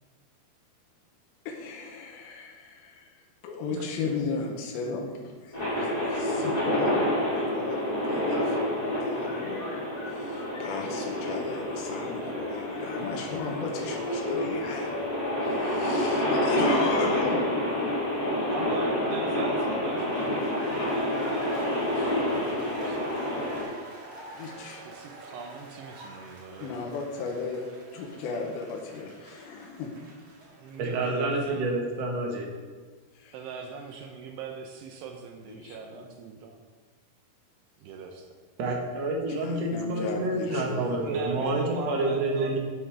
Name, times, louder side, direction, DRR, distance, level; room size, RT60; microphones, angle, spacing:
voice 1, 1.5-5.2 5.4-8.6 9.0-9.7 10.1-14.9 15.4-17.4 24.3-24.8 26.6-27.6 27.9-29.9 33.1-33.4 35.5-36.0 39.4-41.0, left 4 dB, 75° left, 0 dB, 2.7 m, -35 dB
sound 1, 5.5-23.6, left 1 dB, 10° left, 2.7 m, -28 dB
voice 2, 18.5-23.1 24.8-26.9 30.5-31.7 33.3-36.6 37.8-38.4 41.0-42.6, right 4 dB, 85° right, 3 dB, 2.9 m, -41 dB
sound 2, 19.9-31.6, right 2 dB, 40° right, 2.0 m, -44 dB
voice 3, 30.8-32.5 38.6-42.6, right 2 dB, 55° right, 1 dB, 1.9 m, -28 dB
12.0 x 9.5 x 3.4 m, 1.4 s
omnidirectional pair, 4.8 m